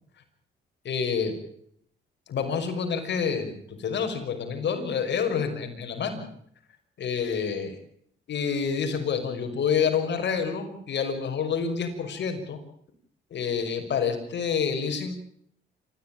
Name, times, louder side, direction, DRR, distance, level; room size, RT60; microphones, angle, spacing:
voice 1, 0.8-1.3 2.3-6.2 7.0-7.7 8.3-12.6 13.3-15.1, left 6 dB, 65° left, 6 dB, 5.8 m, -28 dB
27.5 x 15.0 x 8.6 m, 0.68 s
cardioid pair, 90°, 20 cm